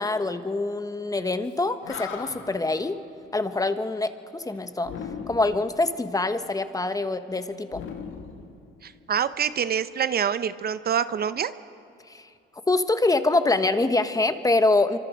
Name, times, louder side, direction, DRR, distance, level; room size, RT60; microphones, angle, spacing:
voice 1, 0.0-3.0 3.3-4.9 5.3-7.8 12.1-12.3 12.7-15.0, left 2 dB, 20° left, 10 dB, 1.2 m, -25 dB
Animal, 1.5-1.6 1.8-2.7 4.8-5.7 7.7-9.0, left 6 dB, 75° left, 2.2 m, -38 dB
voice 2, 8.8-11.5, right 8 dB, 50° right, 14 dB, 0.7 m, -26 dB
25.5 x 25.0 x 5.2 m, 2.6 s
cardioid pair, 90°, 20 cm